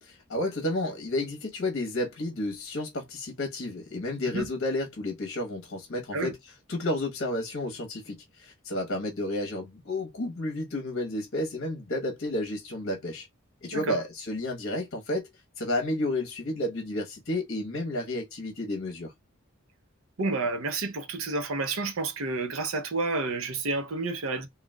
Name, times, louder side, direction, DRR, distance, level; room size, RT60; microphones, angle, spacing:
voice 1, 0.0-6.4 6.7-13.3 13.6-15.3 15.6-19.1, left 1 dB, 55° left, 1.0 m, -31 dB
voice 2, 20.2-24.5, right 3 dB, 75° right, 0.7 m, -30 dB
3.8 x 2.3 x 2.2 m
head